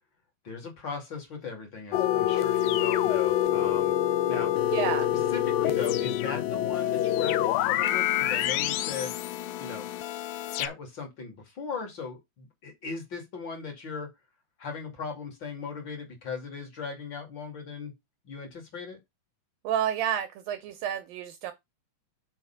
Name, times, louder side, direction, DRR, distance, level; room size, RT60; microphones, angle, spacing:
voice 1, 0.4-3.9 4.3-4.5 5.3-9.1 9.6-9.9 10.6-14.1 14.6-17.9 18.2-19.0, left 5 dB, 35° left, 2.6 m, -38 dB
sound 1, 1.9-10.7, left 12 dB, 85° left, 2.0 m, -26 dB
voice 2, 4.7-5.1 19.6-21.5, right 9 dB, 80° right, 2.1 m, -30 dB
5.6 x 4.7 x 5.7 m
omnidirectional pair, 4.6 m